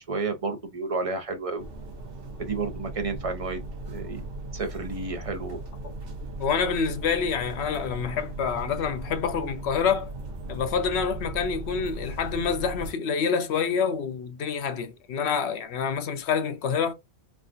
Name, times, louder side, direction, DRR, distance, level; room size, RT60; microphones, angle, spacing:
voice 1, 0.0-1.7 2.4-3.6 3.9-4.2 4.5-5.6, right 4 dB, 35° right, 0.6 m, -31 dB
sound 1, 1.6-12.9, right 2 dB, 55° right, 1.1 m, -38 dB
voice 2, 6.4-10.1 10.5-16.9, left 6 dB, 70° left, 0.9 m, -27 dB
3.5 x 2.4 x 2.4 m
omnidirectional pair, 1.1 m